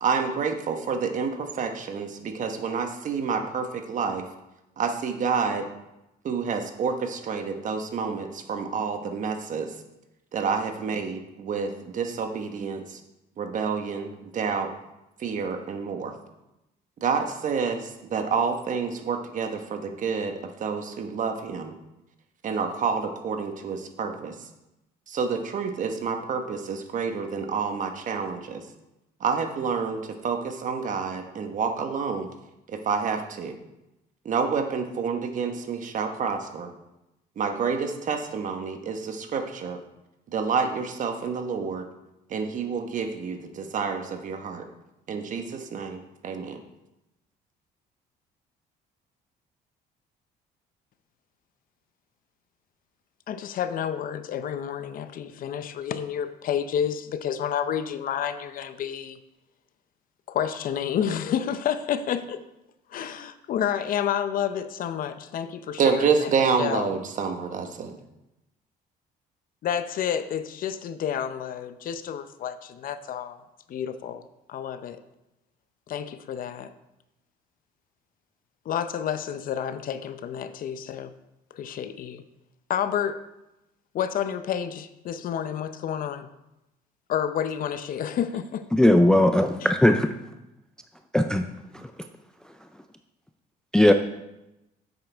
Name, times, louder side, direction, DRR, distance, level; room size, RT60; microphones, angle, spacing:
voice 1, 0.0-4.2 4.8-5.7 6.2-9.7 10.3-13.0 13.4-14.7 15.2-16.1 17.0-21.7 22.4-24.5 25.1-28.6 29.2-32.3 32.7-33.6 34.2-36.7 37.4-39.8 40.3-41.9 42.3-44.7 45.1-46.6 65.8-68.0, right 5 dB, 50° right, 5 dB, 1.2 m, -28 dB
voice 2, 53.3-59.2 60.3-62.4 62.9-66.3 66.6-66.9 69.6-73.4 73.7-74.2 74.5-75.0 75.9-76.7 78.7-81.1 81.5-82.2 82.7-83.2 83.9-86.3 87.1-88.7 89.6-89.7, left 9 dB, 55° left, 12 dB, 0.6 m, -30 dB
voice 3, 88.7-90.1 91.1-91.5 93.7-93.9, left 1 dB, 5° left, 6 dB, 0.4 m, -18 dB
10.5 x 8.1 x 3.5 m, 0.92 s
cardioid pair, 110°, 17 cm